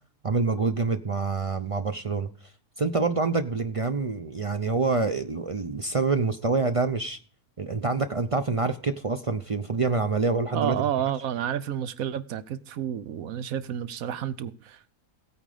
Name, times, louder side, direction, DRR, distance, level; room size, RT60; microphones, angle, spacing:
voice 1, 0.2-2.3 2.8-7.2 7.6-10.8, right 4 dB, 55° right, 0.3 m, -26 dB
voice 2, 10.5-14.9, right 10 dB, 70° right, 1.2 m, -30 dB
16.0 x 9.1 x 5.0 m
omnidirectional pair, 1.6 m